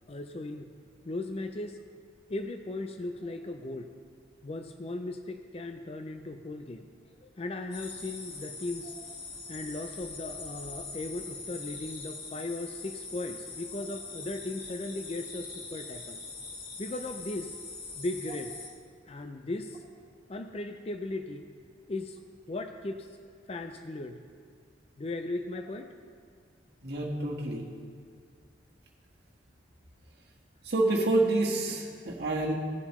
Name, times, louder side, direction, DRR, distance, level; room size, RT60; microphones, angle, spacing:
voice 1, 0.1-0.7 1.0-1.8 2.3-3.9 4.4-6.8 7.2-8.9 9.5-16.2 16.8-17.5 18.0-18.5 19.1-19.8 20.3-21.5 21.9-22.2 22.5-23.1 23.5-24.2 25.0-26.0, left 2 dB, 30° left, 6 dB, 0.4 m, -37 dB
sound 1, 7.7-18.7, left 4 dB, 55° left, 1.5 m, -42 dB
voice 2, 26.8-27.6 30.6-32.6, right 2 dB, 55° right, -3 dB, 1.5 m, -28 dB
17.0 x 7.1 x 3.1 m, 2.1 s
head